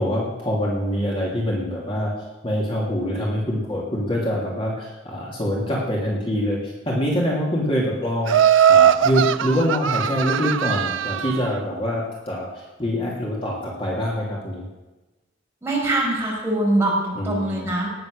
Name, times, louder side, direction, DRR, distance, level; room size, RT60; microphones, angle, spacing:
voice 1, 0.0-14.6 17.1-17.7, equal, 30° left, -4 dB, 2.8 m, -25 dB
Laughter, 8.3-11.5, right 9 dB, 85° right, 0.5 m, -19 dB
voice 2, 15.6-17.9, right 1 dB, 15° right, -5 dB, 5.5 m, -23 dB
19.0 x 7.8 x 6.7 m, 1.1 s
head